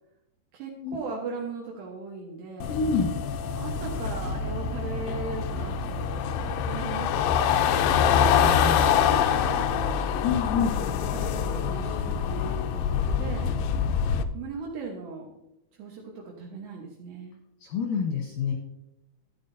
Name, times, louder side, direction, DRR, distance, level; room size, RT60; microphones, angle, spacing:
voice 1, 0.5-2.8 3.5-8.0 8.8-10.0 10.6-13.6 14.3-15.3 15.8-17.4, right 4 dB, 75° right, -2 dB, 3.3 m, -38 dB
sound 1, 2.6-14.2, left 7 dB, 80° left, 2.3 m, -25 dB
voice 2, 2.7-3.1 8.4-8.8 10.2-10.7 17.6-18.5, left 6 dB, 65° left, 0 dB, 2.3 m, -27 dB
12.5 x 9.9 x 2.7 m, 0.86 s
omnidirectional pair, 5.0 m